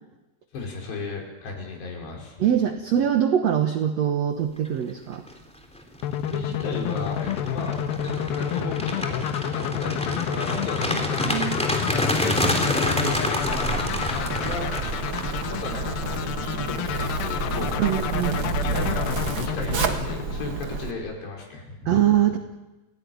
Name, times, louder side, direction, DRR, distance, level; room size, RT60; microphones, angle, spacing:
voice 1, 0.5-2.5 6.3-9.3 9.5-11.4 11.9-14.7 15.5-17.9 18.6-19.1 19.4-22.3, left 3 dB, 90° left, 0 dB, 7.4 m, -35 dB
voice 2, 2.4-5.2 10.9-11.5 17.8-18.4 21.8-22.4, right 10 dB, 70° right, 6 dB, 1.6 m, -23 dB
sound 1, 5.0-5.3 5.8-15.9, equal, ahead, 3.1 m, -28 dB
sound 2, 6.0-20.9, left 10 dB, 75° left, 2.7 m, -30 dB
Zipper (clothing), 13.4-20.9, right 4 dB, 45° right, 1.7 m, -29 dB
29.5 x 17.5 x 9.5 m, 1.1 s
omnidirectional pair, 4.8 m